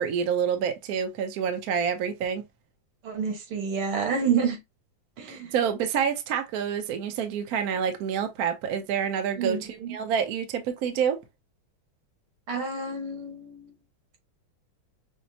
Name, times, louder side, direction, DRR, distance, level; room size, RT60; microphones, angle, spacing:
voice 1, 0.0-2.4 5.3-11.2, right 7 dB, 65° right, 0.9 m, -28 dB
voice 2, 3.0-4.6 5.2-5.5 9.4-9.9 12.5-13.7, right 6 dB, 90° right, 2.1 m, -29 dB
5.9 x 2.0 x 2.7 m
omnidirectional pair, 2.2 m